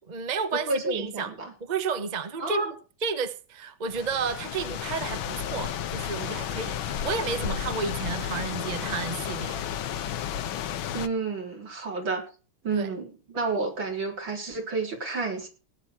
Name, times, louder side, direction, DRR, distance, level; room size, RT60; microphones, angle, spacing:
voice 1, 0.1-1.3 1.6-2.7 3.0-9.6 12.7-12.9, right 5 dB, 30° right, 0.9 m, -31 dB
voice 2, 0.7-1.5 2.4-2.7 10.9-12.2 12.6-15.5, right 3 dB, 70° right, 4.8 m, -30 dB
sound 1, 3.9-11.1, left 9 dB, 85° left, 1.7 m, -32 dB
18.5 x 9.2 x 4.5 m
omnidirectional pair, 2.2 m